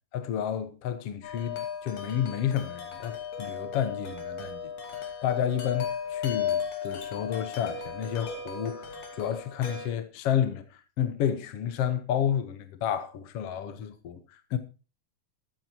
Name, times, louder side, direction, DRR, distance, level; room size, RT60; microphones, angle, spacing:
voice 1, 0.1-14.6, left 9 dB, 60° left, 1.7 m, -31 dB
Wind chime, 1.2-9.9, left 7 dB, 80° left, 4.4 m, -35 dB
14.0 x 13.5 x 2.9 m
omnidirectional pair, 3.7 m